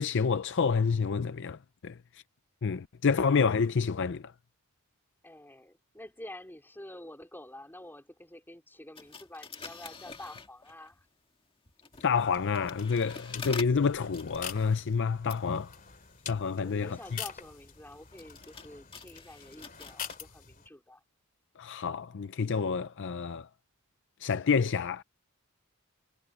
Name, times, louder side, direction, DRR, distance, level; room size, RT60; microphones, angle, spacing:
voice 1, 0.0-2.0 2.6-4.3 12.0-15.7 16.3-17.2 21.6-23.5 24.2-25.0, left 5 dB, 55° left, 0.5 m, -28 dB
voice 2, 5.2-11.1 16.6-21.0, left 1 dB, 10° left, 4.3 m, -48 dB
sound 1, 9.0-11.0 11.7-20.2, left 5 dB, 25° left, 1.8 m, -48 dB
sound 2, 11.9-20.7, left 7 dB, 40° left, 3.1 m, -46 dB
head